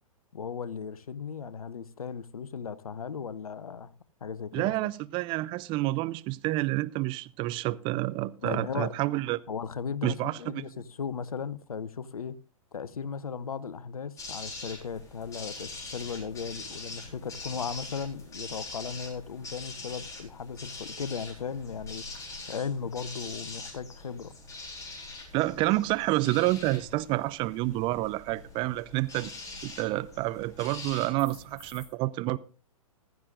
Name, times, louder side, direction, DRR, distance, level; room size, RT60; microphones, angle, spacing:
voice 1, 0.3-3.9 4.2-4.7 8.4-8.9 9.5-12.4 12.7-22.0 22.5-24.3, left 6 dB, 75° left, 0.8 m, -36 dB
voice 2, 4.5-9.4 10.0-10.7 25.3-29.3 29.6-32.4, right 18 dB, 25° right, 0.5 m, -29 dB
sound 1, 14.2-31.9, left 3 dB, 20° left, 3.7 m, -43 dB
15.0 x 14.0 x 2.5 m
figure-of-eight pair, 115°, 18 cm